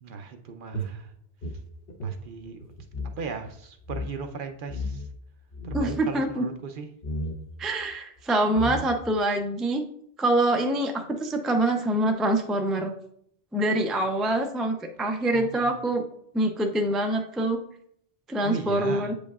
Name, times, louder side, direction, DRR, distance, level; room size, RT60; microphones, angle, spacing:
voice 1, 0.0-1.1 2.0-2.7 3.2-5.1 5.6-6.9 15.3-15.8 18.4-19.1, right 4 dB, 60° right, 6 dB, 0.7 m, -37 dB
sound 1, 0.7-3.2 3.4-3.5 3.8-4.1 4.7-5.2 5.5-6.1 7.0-7.4 8.2-8.3 8.5-9.2, left 1 dB, 65° left, 1.0 m, -33 dB
voice 2, 5.7-6.4 7.6-9.8 10.2-12.9 13.5-16.0 16.3-17.6 18.3-19.1, right 1 dB, ahead, 4 dB, 0.3 m, -25 dB
8.0 x 5.1 x 2.3 m, 0.67 s
omnidirectional pair, 1.1 m